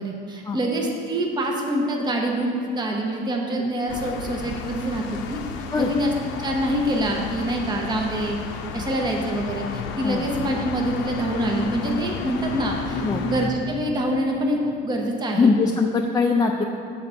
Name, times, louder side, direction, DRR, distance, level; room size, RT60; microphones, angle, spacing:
voice 1, 0.0-5.4 5.8-6.1 6.4-8.4 8.7-15.5, right 1 dB, 20° right, 0 dB, 0.8 m, -25 dB
sound 1, 3.9-13.5, left 5 dB, 70° left, 0.6 m, -33 dB
voice 2, 15.4-16.6, left 4 dB, 20° left, 0 dB, 0.4 m, -21 dB
5.8 x 4.3 x 6.0 m, 2.7 s
supercardioid pair, 95°, 20 cm